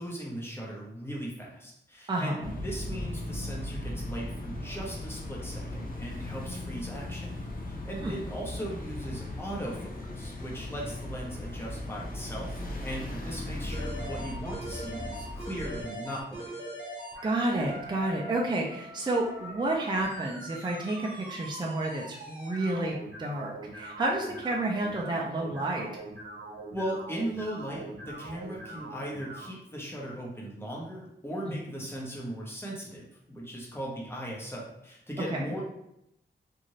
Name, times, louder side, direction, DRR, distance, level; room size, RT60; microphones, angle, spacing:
voice 1, 0.0-7.4 7.7-16.6 26.7-35.6, right 1 dB, 10° left, -4 dB, 0.9 m, -38 dB
voice 2, 2.1-2.5 8.0-8.1 17.2-25.9 35.3-35.4, right 2 dB, 25° right, -2 dB, 0.5 m, -30 dB
sound 1, 2.4-15.9, left 1 dB, 50° left, 0.6 m, -38 dB
sound 2, 13.7-29.5, right 1 dB, 80° right, 1.0 m, -42 dB
2.7 x 2.5 x 3.1 m, 0.81 s
wide cardioid pair, 80°, 19 cm